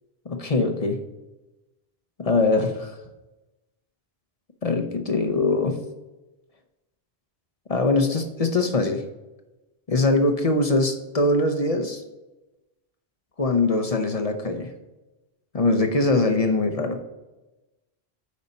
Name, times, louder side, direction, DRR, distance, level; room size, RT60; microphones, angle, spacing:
voice 1, 0.3-1.0 2.2-3.0 4.6-5.8 7.7-9.0 9.9-12.0 13.4-14.7 15.5-17.0, left 2 dB, 40° left, 5 dB, 0.7 m, -22 dB
9.4 x 4.2 x 5.2 m, 1.0 s
omnidirectional pair, 1.1 m